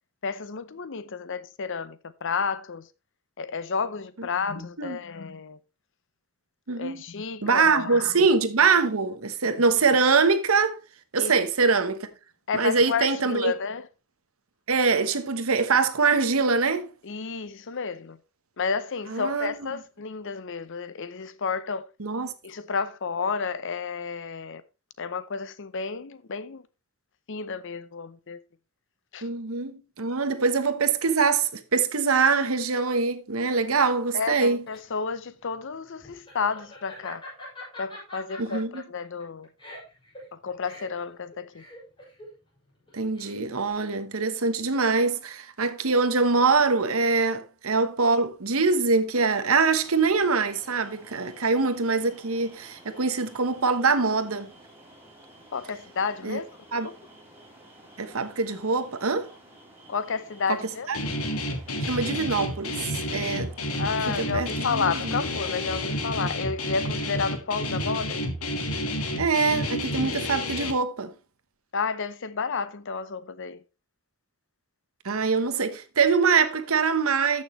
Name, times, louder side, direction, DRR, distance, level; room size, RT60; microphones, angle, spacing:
voice 1, 0.2-2.9 3.4-5.6 6.7-8.2 11.2-11.4 12.5-13.9 17.0-18.2 18.6-21.9 22.4-24.6 25.0-26.6 27.3-28.4 29.1-29.3 34.1-37.2 37.8-39.5 40.3-41.6 55.5-56.5 56.8-56.9 59.9-60.9 63.8-68.3 71.7-73.6, left 5 dB, 60° left, 0.7 m, -31 dB
voice 2, 6.7-7.0 7.4-10.8 11.1-12.1 12.5-13.5 14.7-16.9 19.1-19.5 22.0-22.3 29.2-34.6 38.4-38.8 42.9-54.5 56.2-56.4 56.7-56.9 58.0-59.3 60.5-60.6 60.9-61.0 61.9-63.5 64.2-65.1 69.2-71.1 75.0-77.4, right 4 dB, 75° right, 1.1 m, -24 dB
Laughter, 34.3-43.7, left 1 dB, 25° left, 6.3 m, -45 dB
sound 1, 49.8-66.4, right 1 dB, 10° right, 3.8 m, -52 dB
Guitar, 60.9-70.7, left 1 dB, 80° left, 1.7 m, -30 dB
13.5 x 6.4 x 3.2 m
head